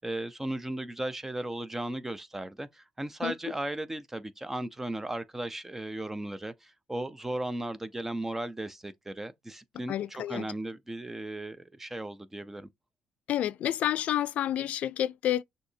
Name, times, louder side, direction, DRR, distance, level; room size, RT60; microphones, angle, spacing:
voice 1, 0.0-12.7, right 1 dB, 15° right, 0.5 m, -36 dB
voice 2, 9.9-10.5 13.3-15.4, left 12 dB, 70° left, 0.3 m, -29 dB
6.3 x 2.8 x 2.7 m
cardioid pair, 95°, 2 cm